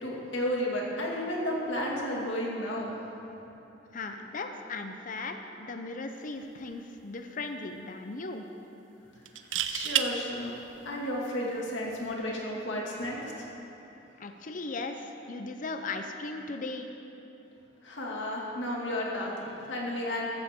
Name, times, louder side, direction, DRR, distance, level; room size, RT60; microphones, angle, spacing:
voice 1, 0.0-2.9 9.7-10.6 10.9-13.5 17.8-20.3, left 1 dB, 80° left, -3 dB, 2.3 m, -32 dB
voice 2, 3.9-8.4 14.2-16.9, left 3 dB, 45° left, 6 dB, 0.7 m, -37 dB
sound 1, 6.4-6.6 7.0-7.1 9.3-10.1 11.9-12.1, right 10 dB, 90° right, 0.6 m, -29 dB
14.5 x 14.0 x 3.7 m, 3.0 s
head